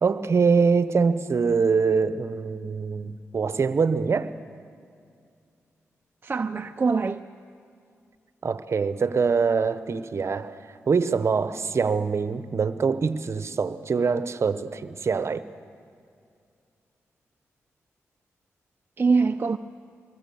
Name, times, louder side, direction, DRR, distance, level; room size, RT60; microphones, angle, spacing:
voice 1, 0.0-4.4 8.4-15.4, right 5 dB, 55° right, 1.0 m, -24 dB
voice 2, 6.2-7.2 19.0-19.6, right 4 dB, 35° right, 0.6 m, -23 dB
24.5 x 21.0 x 7.1 m
cardioid pair, 50°, 6 cm